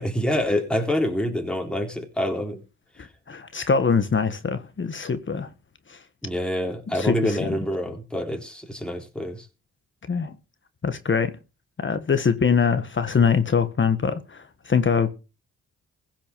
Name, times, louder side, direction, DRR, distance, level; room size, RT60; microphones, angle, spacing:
voice 1, 0.0-2.6 6.2-9.5, left 1 dB, 5° left, 3.7 m, -26 dB
voice 2, 3.0-5.5 5.9-6.0 6.9-7.4 10.1-10.3 10.8-11.3 11.8-15.2, left 6 dB, 40° left, 1.5 m, -23 dB
16.0 x 5.9 x 7.2 m
cardioid pair, 75°, 32 cm